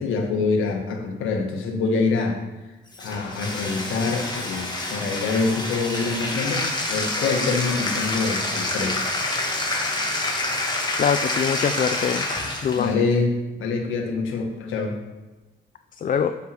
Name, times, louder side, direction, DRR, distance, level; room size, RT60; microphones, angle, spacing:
voice 1, 0.0-2.4 3.0-9.0 12.8-15.0, left 4 dB, 85° left, 3 dB, 1.5 m, -25 dB
Bathtub (filling or washing), 2.9-12.9, left 2 dB, 20° left, 1.8 m, -27 dB
voice 2, 11.0-12.3 12.6-13.0 16.0-16.3, left 7 dB, 40° left, 8 dB, 0.5 m, -23 dB
7.3 x 5.6 x 6.1 m, 1.1 s
cardioid pair, 90°, 20 cm